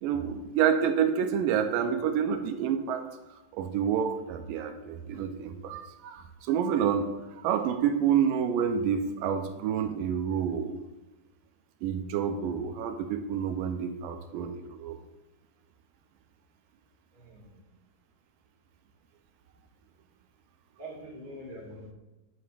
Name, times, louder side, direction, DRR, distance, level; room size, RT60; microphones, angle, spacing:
voice 1, 0.0-3.1 3.5-7.1 7.4-10.8 11.8-15.0, right 8 dB, 80° right, 7 dB, 2.2 m, -28 dB
voice 2, 17.1-17.7 20.8-21.9, right 1 dB, 35° right, -6 dB, 2.0 m, -44 dB
11.0 x 9.2 x 2.5 m, 1.1 s
omnidirectional pair, 4.3 m